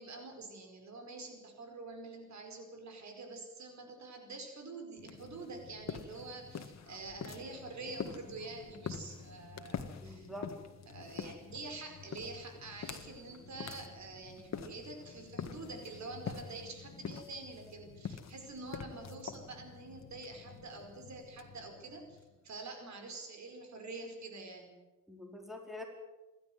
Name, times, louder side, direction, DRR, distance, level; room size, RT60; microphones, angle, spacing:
voice 1, 0.0-10.3 10.9-22.2 22.4-24.7, right 3 dB, 65° right, 5 dB, 4.9 m, -46 dB
sound 1, 5.0-22.5, left 6 dB, 60° left, 1.8 m, -46 dB
voice 2, 10.0-10.5 25.1-25.8, left 1 dB, ahead, 2 dB, 4.7 m, -45 dB
27.0 x 12.0 x 9.3 m, 1.1 s
cardioid pair, 110°, 30 cm